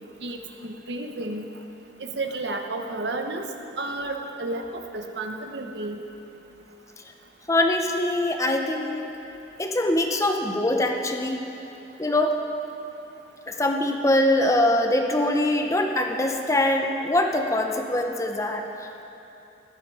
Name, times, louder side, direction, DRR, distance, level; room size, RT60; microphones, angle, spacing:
voice 1, 0.2-1.5 2.0-3.5 3.8-6.0, right 2 dB, 70° right, 4 dB, 1.1 m, -32 dB
voice 2, 7.5-9.1 9.6-11.4 12.0-12.4 13.5-18.7, left 1 dB, 15° left, 3 dB, 0.9 m, -23 dB
15.5 x 13.0 x 5.0 m, 2.9 s
head